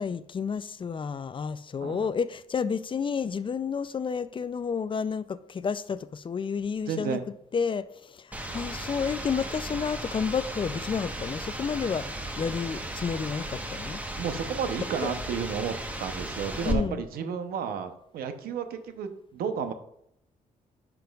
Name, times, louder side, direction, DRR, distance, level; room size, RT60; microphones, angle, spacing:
voice 1, 0.0-7.2 7.5-14.0 15.0-15.1 16.6-17.0, left 6 dB, 35° left, 0.4 m, -31 dB
voice 2, 6.9-7.2 14.2-19.7, right 7 dB, 85° right, 0.8 m, -32 dB
sound 1, 8.3-16.7, right 1 dB, 10° right, 1.1 m, -35 dB
10.0 x 6.0 x 2.4 m
cardioid pair, 70°, 15 cm